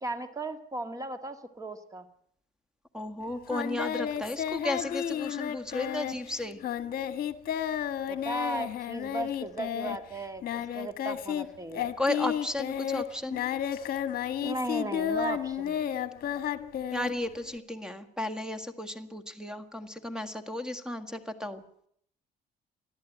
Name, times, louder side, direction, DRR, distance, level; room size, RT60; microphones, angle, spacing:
voice 1, 0.0-2.1 8.1-11.9 14.4-15.8, right 2 dB, 20° right, 10 dB, 1.7 m, -36 dB
voice 2, 2.9-6.6 12.0-13.4 16.9-21.6, left 1 dB, 5° right, 10 dB, 1.7 m, -34 dB
Singing, 3.5-11.5 11.7-17.6, left 9 dB, 60° left, 1.4 m, -32 dB
21.0 x 13.5 x 9.2 m, 0.68 s
cardioid pair, 110°, 17 cm